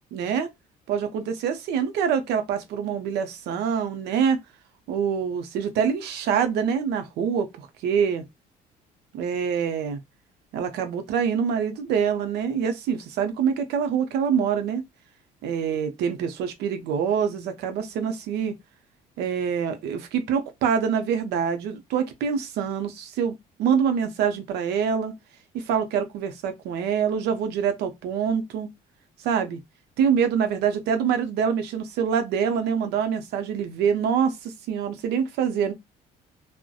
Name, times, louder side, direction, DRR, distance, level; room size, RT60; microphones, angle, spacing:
voice 1, 0.1-0.5 0.9-4.4 4.9-8.2 9.1-10.0 10.5-14.8 15.4-18.5 19.2-25.1 25.5-28.7 29.2-29.6 30.0-35.7, right 7 dB, 80° right, 0.5 m, -25 dB
2.3 x 2.0 x 2.6 m
cardioid pair, 110°, 17 cm